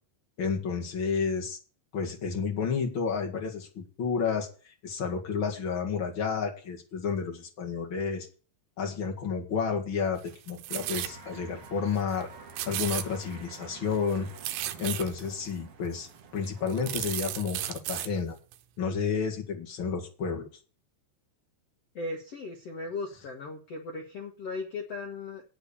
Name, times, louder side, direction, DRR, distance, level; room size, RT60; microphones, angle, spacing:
voice 1, 0.4-1.6 1.9-8.3 8.8-12.3 12.7-14.3 14.8-16.1 16.3-18.3 18.8-20.5, left 5 dB, 50° left, 0 dB, 1.5 m, -31 dB
sound 1, 10.2-11.2 11.6-11.7 12.0-12.2 12.5-13.6 13.9-15.3 16.0-16.1 16.4-18.1 18.5-18.6, right 14 dB, 90° right, 3.2 m, -35 dB
sound 2, 10.7-17.2, right 4 dB, 50° right, 1.9 m, -48 dB
voice 2, 21.9-25.4, left 3 dB, 80° left, 1 dB, 1.3 m, -37 dB
8.9 x 8.1 x 6.8 m, 0.37 s
omnidirectional pair, 5.2 m